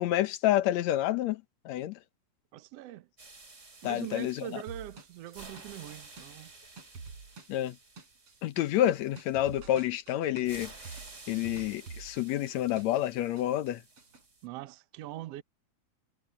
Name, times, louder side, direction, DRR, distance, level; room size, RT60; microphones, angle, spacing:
voice 1, 0.0-2.0 3.8-4.5 7.5-7.8 8.4-10.7 11.3-13.8, left 13 dB, 70° left, 2.0 m, -29 dB
voice 2, 2.5-3.1 3.8-6.5 14.4-15.4, right 14 dB, 65° right, 1.8 m, -42 dB
sound 1, 3.2-9.8 10.4-14.5, right 3 dB, 25° right, 3.2 m, -52 dB
sound 2, 4.7-13.1 13.4-14.2, right 4 dB, 50° right, 4.7 m, -48 dB
omnidirectional pair, 3.5 m